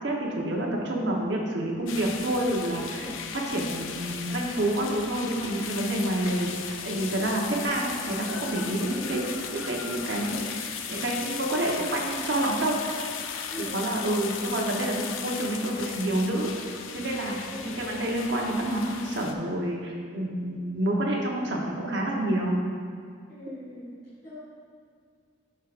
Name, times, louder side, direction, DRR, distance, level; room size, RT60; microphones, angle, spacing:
voice 1, 0.0-12.8 13.6-22.6, right 1 dB, 65° right, -1 dB, 1.0 m, -28 dB
sound 1, 1.9-19.3, left 7 dB, 85° left, 0.4 m, -37 dB
voice 2, 2.9-3.2 8.8-9.2 13.5-13.8 17.5-17.8 23.3-24.0 24.2-24.4, left 1 dB, 55° left, -12 dB, 1.7 m, -41 dB
11.0 x 4.7 x 2.5 m, 2.2 s
head